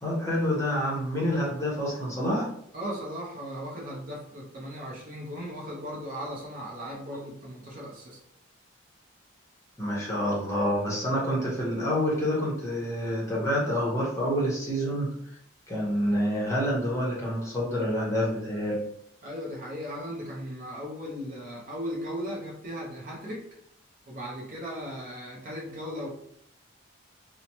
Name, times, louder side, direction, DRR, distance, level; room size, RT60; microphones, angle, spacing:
voice 1, 0.0-2.5 9.8-15.1 15.7-18.8, equal, 15° left, -5 dB, 0.7 m, -27 dB
voice 2, 2.7-8.2 19.2-23.5 24.1-26.1, equal, 40° right, -3 dB, 0.6 m, -37 dB
2.8 x 2.0 x 2.9 m, 0.69 s
head